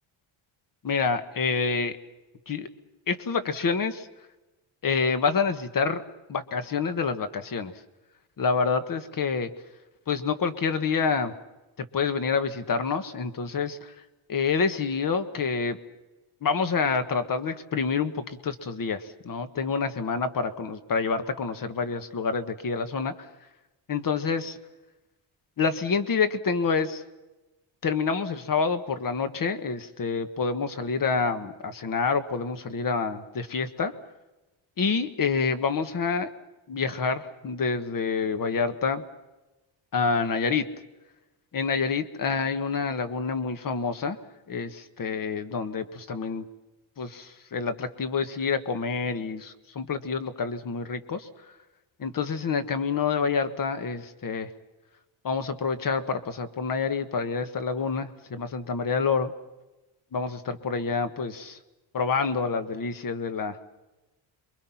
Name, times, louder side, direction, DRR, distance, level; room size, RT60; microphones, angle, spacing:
voice 1, 0.8-2.0 2.5-2.7 3.1-4.1 4.8-6.0 6.3-7.7 8.4-9.5 10.1-11.3 11.8-13.9 14.3-15.8 16.4-23.3 23.9-24.6 25.6-27.0 27.8-33.9 34.8-36.3 36.7-39.0 39.9-40.6 41.5-44.2 44.5-46.4 47.0-51.3 52.0-54.5 55.2-59.3 60.1-61.6 61.9-63.7, left 5 dB, 40° left, 10 dB, 1.6 m, -27 dB
27.5 x 23.5 x 5.8 m, 1.1 s
cardioid pair, 135°, 50 cm